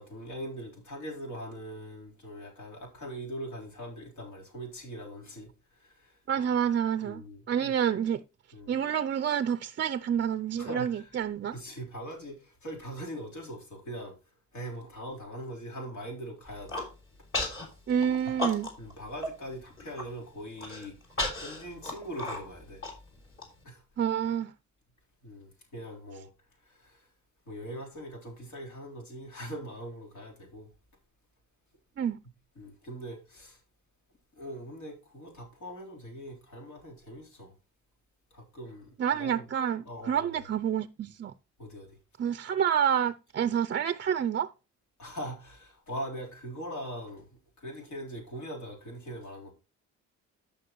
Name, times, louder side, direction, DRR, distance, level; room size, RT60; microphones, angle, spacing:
voice 1, 0.0-6.2 7.0-7.7 8.5-8.8 10.6-11.2 11.5-14.2 14.5-16.9 18.8-21.0 21.4-22.8 23.6-23.8 25.2-26.3 26.6-27.1 27.5-30.7 32.6-33.6 34.3-37.5 38.3-39.4 39.9-40.4 41.6-42.0 45.0-47.3 47.6-49.5, equal, 70° left, 3.8 m, -41 dB
voice 2, 6.3-8.2 8.7-11.6 17.9-18.7 24.0-24.5 32.0-32.2 39.0-41.3 42.2-44.5, right 8 dB, 40° right, 0.5 m, -28 dB
Human voice, 16.5-16.9 17.3-17.6 18.0-18.9 19.2-19.3 19.7-20.0 20.6-23.4, left 2 dB, 45° left, 3.9 m, -34 dB
13.0 x 5.6 x 3.0 m
cardioid pair, 90°, 30 cm